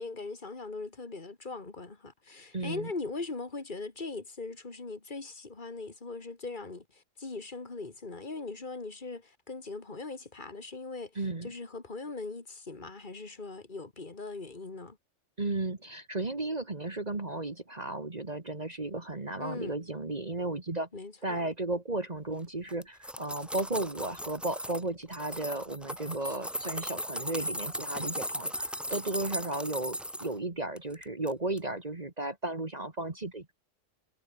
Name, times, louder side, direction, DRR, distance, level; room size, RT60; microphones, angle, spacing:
voice 1, 0.0-15.0 19.4-19.7 20.9-21.5, left 3 dB, 40° left, 2.7 m, -40 dB
voice 2, 2.5-2.9 11.2-11.5 15.4-20.9 21.2-33.5, right 2 dB, 35° right, 2.0 m, -34 dB
sound 1, 22.7-24.8 25.1-30.3 30.8-31.3 31.6-31.7, equal, ahead, 5.2 m, -37 dB
omnidirectional pair, 1.3 m